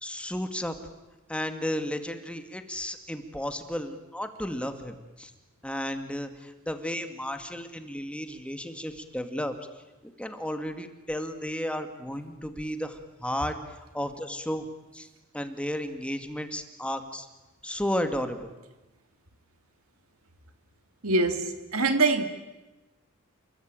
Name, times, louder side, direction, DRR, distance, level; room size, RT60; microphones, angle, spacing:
voice 1, 0.0-0.8 1.3-5.3 5.6-9.6 10.0-13.6 13.9-14.7 14.9-15.1 15.3-17.3 17.6-18.5, equal, 5° left, 2.0 m, -33 dB
voice 2, 21.0-22.2, right 3 dB, 75° right, 2.7 m, -24 dB
29.5 x 22.0 x 9.0 m
head